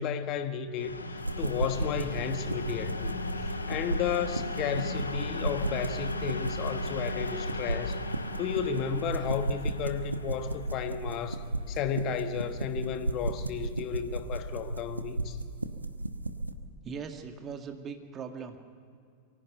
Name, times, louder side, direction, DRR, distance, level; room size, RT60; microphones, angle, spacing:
voice 1, 0.0-8.0 8.3-15.4, left 7 dB, 35° left, 1.4 m, -33 dB
sound 1, 0.7-12.4, left 2 dB, 80° left, 1.3 m, -37 dB
sound 2, 1.2-16.5, right 2 dB, 85° right, 0.9 m, -35 dB
voice 2, 16.8-18.6, right 6 dB, 25° right, 2.0 m, -40 dB
23.5 x 16.0 x 7.9 m
figure-of-eight pair, 90°, 0 cm